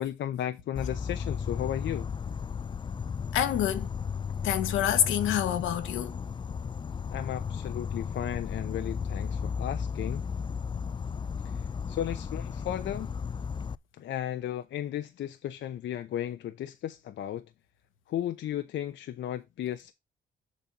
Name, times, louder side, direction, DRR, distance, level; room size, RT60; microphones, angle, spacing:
voice 1, 0.0-2.1 7.1-10.2 11.9-13.1 14.0-17.4 18.1-19.9, left 11 dB, 70° left, 0.8 m, -34 dB
Insect, 0.8-13.8, left 6 dB, 25° left, 0.3 m, -34 dB
voice 2, 3.3-3.9 4.4-6.2, left 10 dB, 85° left, 1.3 m, -27 dB
7.2 x 4.1 x 5.9 m
cardioid pair, 90°, 20 cm